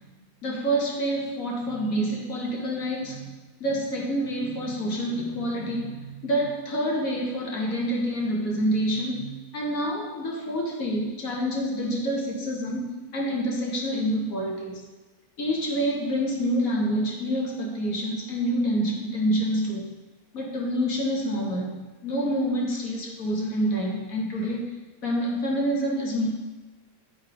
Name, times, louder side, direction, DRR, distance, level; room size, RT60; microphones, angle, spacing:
voice 1, 0.4-3.3 3.6-14.8 15.4-19.9 20.3-24.7 25.0-26.3, equal, 55° left, -2 dB, 1.9 m, -27 dB
9.7 x 3.9 x 5.0 m, 1.2 s
omnidirectional pair, 1.7 m